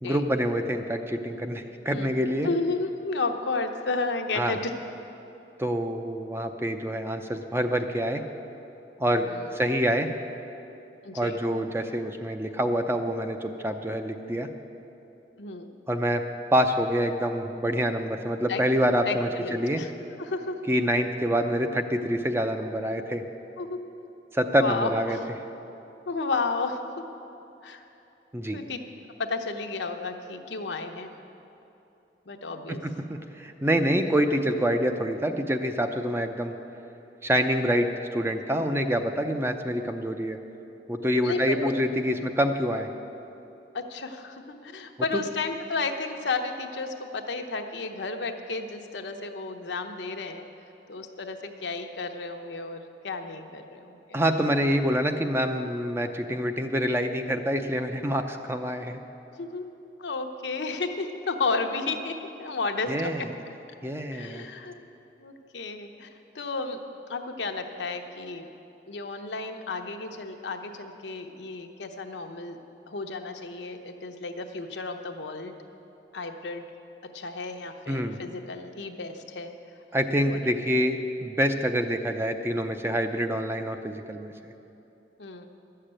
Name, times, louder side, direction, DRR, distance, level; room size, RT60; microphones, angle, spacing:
voice 1, 0.0-2.5 4.4-4.6 5.6-8.2 9.0-10.1 11.1-14.5 15.9-16.2 16.5-19.8 20.7-23.2 24.3-25.2 28.3-28.6 32.8-36.5 37.2-40.4 40.9-42.9 54.1-59.0 62.9-63.3 63.8-64.5 77.9-78.2 79.9-84.3, equal, 15° right, 6 dB, 0.5 m, -26 dB
voice 2, 2.4-4.7 9.2-9.5 11.0-11.4 15.4-15.8 18.5-18.6 19.1-19.9 20.2-20.6 23.6-23.8 24.5-25.2 26.1-26.9 27.6-27.8 28.5-28.8 29.2-31.1 32.3-32.8 41.2-41.7 43.7-50.5 50.9-54.2 59.4-59.6 60.0-62.1 62.4-63.3 64.1-64.7 65.2-66.1 66.3-66.8 67.1-68.5 68.9-72.6 72.9-75.5 76.1-76.6 77.1-79.5 80.3-80.5 85.2-85.5, left 3 dB, 80° left, 5 dB, 0.9 m, -32 dB
12.0 x 6.7 x 8.8 m, 2.9 s
head